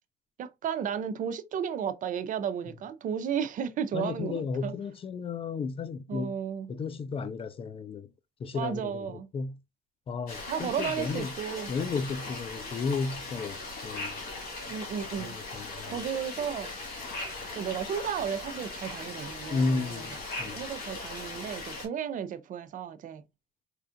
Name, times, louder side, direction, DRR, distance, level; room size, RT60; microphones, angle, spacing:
voice 1, 0.4-4.7 6.1-6.7 8.5-9.3 10.5-11.7 14.7-16.8 17.5-20.0 20.4-23.2, right 8 dB, 50° right, 0.5 m, -34 dB
voice 2, 3.9-6.3 6.7-8.1 8.4-9.6 10.1-11.3 11.7-14.2 15.2-16.0 19.5-20.6, left 4 dB, 35° left, 0.4 m, -33 dB
sound 1, 10.3-21.9, left 2 dB, 60° left, 1.7 m, -39 dB
4.3 x 2.4 x 2.5 m
cardioid pair, 110°, 17 cm